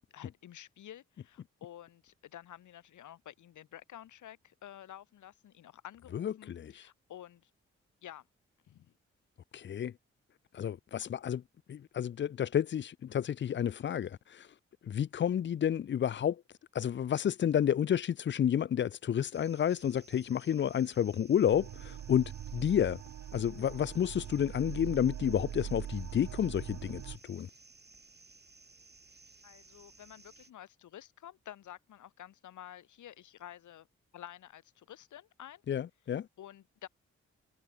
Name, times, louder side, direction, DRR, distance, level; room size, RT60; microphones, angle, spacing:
voice 1, 0.1-7.5 8.0-8.3 8.7-8.9 29.4-33.9 34.1-35.6 36.4-36.9, left 11 dB, 85° left, 5.3 m, -51 dB
voice 2, 6.1-6.9 9.5-9.9 10.5-11.4 11.7-14.5 14.8-16.4 16.7-23.0 23.3-27.5 35.7-36.3, left 9 dB, 40° left, 0.4 m, -30 dB
sound 1, 19.3-30.5, right 3 dB, 35° right, 5.4 m, -58 dB
sound 2, 21.5-27.2, right 10 dB, 70° right, 1.0 m, -42 dB
supercardioid pair, 40°, 29 cm